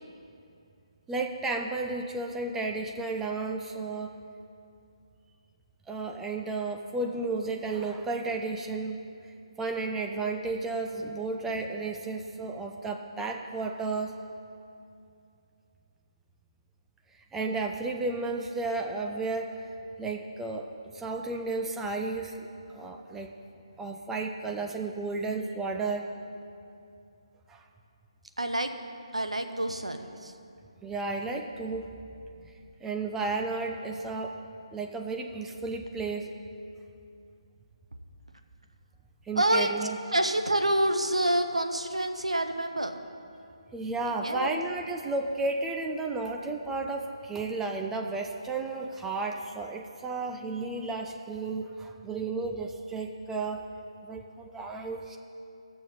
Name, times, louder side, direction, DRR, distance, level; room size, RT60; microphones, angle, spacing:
voice 1, 1.1-4.1 5.9-9.0 9.6-14.1 17.3-19.6 20.0-20.7 20.9-23.3 23.8-26.1 27.5-27.6 30.8-31.9 32.8-34.4 34.7-36.3 39.3-40.0 43.7-53.7 54.0-55.2, right 3 dB, 5° right, 2 dB, 0.4 m, -33 dB
voice 2, 28.4-28.8 29.1-30.3 39.4-39.7 40.1-43.0 44.0-44.6, right 1 dB, 80° right, 6 dB, 0.8 m, -27 dB
18.0 x 6.7 x 4.1 m, 2.5 s
figure-of-eight pair, 145°, 3 cm